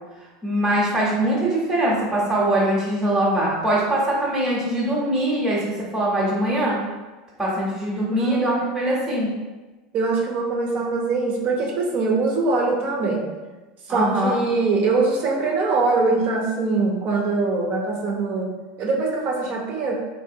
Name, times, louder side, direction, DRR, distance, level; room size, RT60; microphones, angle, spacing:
voice 1, 0.4-5.6 5.9-6.8 7.4-9.3 13.9-14.4, right 1 dB, 5° right, -6 dB, 0.9 m, -22 dB
voice 2, 8.1-9.1 9.9-13.3 13.9-19.9, right 3 dB, 45° right, -1 dB, 0.6 m, -23 dB
3.6 x 2.7 x 2.7 m, 1.2 s
supercardioid pair, 120°, 4 cm